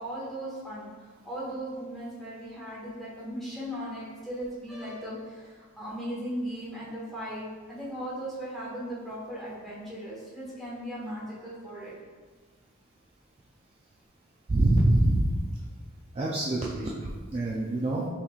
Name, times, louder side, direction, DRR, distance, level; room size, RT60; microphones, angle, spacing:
voice 1, 0.0-11.9, equal, ahead, -8 dB, 1.2 m, -37 dB
voice 2, 14.5-15.4 16.1-18.1, right 1 dB, 30° right, -4 dB, 0.4 m, -25 dB
5.7 x 3.0 x 2.3 m, 1.4 s
head